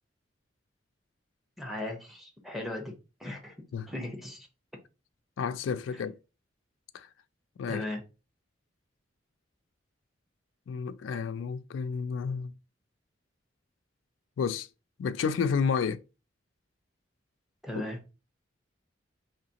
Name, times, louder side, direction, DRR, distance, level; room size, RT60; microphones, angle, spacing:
voice 1, 1.6-2.9 3.2-3.6 3.9-4.5 5.9-6.0 7.7-8.0 17.6-18.0, left 1 dB, ahead, 0.8 m, -37 dB
voice 2, 5.4-6.2 6.9-7.1 7.6-7.9 10.7-12.5 14.4-14.7 15.0-16.0, left 6 dB, 90° left, 0.3 m, -30 dB
4.8 x 3.1 x 2.8 m
head